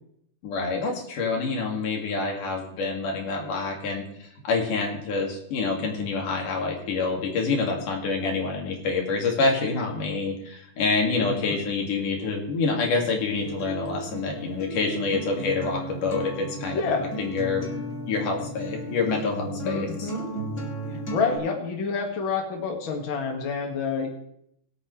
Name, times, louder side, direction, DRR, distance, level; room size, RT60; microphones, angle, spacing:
voice 1, 0.4-4.0 4.4-16.8 17.2-20.1, left 4 dB, 85° left, 1 dB, 3.8 m, -27 dB
voice 2, 11.1-11.6 16.7-17.1 19.6-20.3 20.9-24.1, left 5 dB, 45° left, 2 dB, 2.4 m, -28 dB
Acoustic guitar, 13.4-21.4, right 1 dB, 25° left, 2.3 m, -34 dB
22.5 x 8.5 x 3.2 m, 0.71 s
omnidirectional pair, 3.6 m